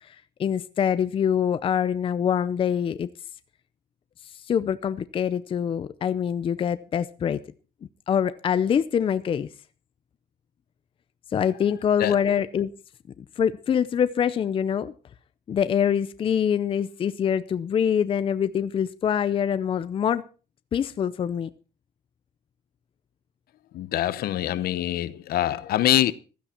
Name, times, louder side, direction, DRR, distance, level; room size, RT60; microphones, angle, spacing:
voice 1, 0.4-3.1 4.5-7.4 8.1-9.5 11.3-12.7 13.2-14.9 15.5-20.2 20.7-21.5, left 8 dB, 30° left, 0.6 m, -24 dB
voice 2, 23.7-26.1, left 13 dB, 65° left, 0.9 m, -24 dB
16.0 x 13.0 x 4.4 m
cardioid pair, 170°, 17 cm